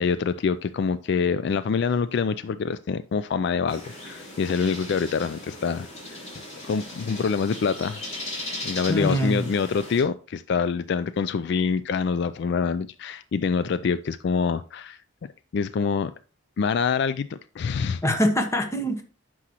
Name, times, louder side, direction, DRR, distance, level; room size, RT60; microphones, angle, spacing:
voice 1, 0.0-6.2 6.6-8.0 8.6-15.0 15.5-16.1 16.6-18.0, left 5 dB, 55° left, 0.3 m, -26 dB
sound 1, 3.7-10.0, left 1 dB, 35° left, 3.1 m, -38 dB
voice 2, 8.9-9.5 18.0-19.0, equal, 15° left, 1.1 m, -23 dB
9.8 x 6.2 x 2.9 m
head